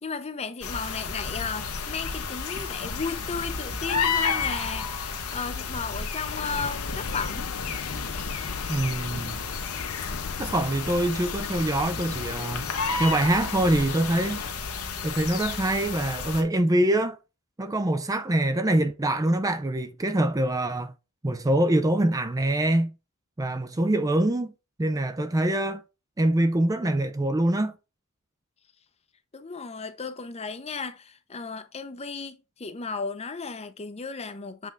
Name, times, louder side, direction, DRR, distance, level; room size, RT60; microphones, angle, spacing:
voice 1, 0.0-7.5 29.3-34.7, left 4 dB, 30° left, 0.7 m, -34 dB
sound 1, 0.6-16.4, left 5 dB, 90° left, 1.2 m, -32 dB
sound 2, 6.2-14.5, left 6 dB, 70° left, 0.5 m, -39 dB
voice 2, 8.7-9.4 10.4-12.6 13.0-14.4 15.0-17.2 17.6-20.9 21.2-22.9 23.4-24.5 24.8-25.8 26.2-27.8, right 1 dB, 15° right, 0.4 m, -24 dB
7.5 x 3.7 x 3.4 m
head